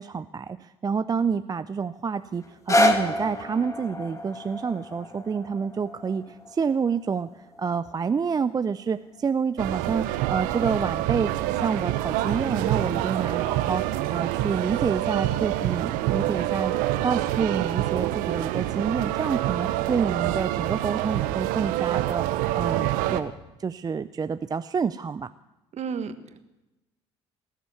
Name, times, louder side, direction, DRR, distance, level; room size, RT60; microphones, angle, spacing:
voice 1, 0.0-11.3 11.6-16.7 17.0-22.3 22.5-23.3 23.6-25.3, right 6 dB, 25° right, 13 dB, 0.5 m, -28 dB
sound 1, 2.4-8.5 9.2-9.3, left 1 dB, 20° left, 2.1 m, -29 dB
sound 2, 9.6-23.2, right 14 dB, 70° right, 0.8 m, -26 dB
voice 2, 25.7-26.4, right 6 dB, 50° right, 10 dB, 1.4 m, -32 dB
19.0 x 7.4 x 9.5 m, 0.99 s
hypercardioid pair, 55°, 15 cm